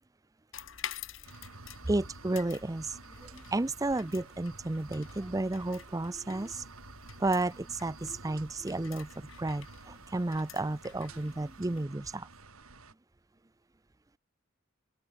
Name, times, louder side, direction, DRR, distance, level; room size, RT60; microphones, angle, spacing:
sound 1, 0.5-11.8, left 8 dB, 60° left, 2.1 m, -49 dB
sound 2, 1.2-12.9, right 3 dB, 80° right, 4.3 m, -51 dB
voice 1, 1.9-6.6 7.2-12.3, right 2 dB, 15° right, 0.5 m, -32 dB
open air
head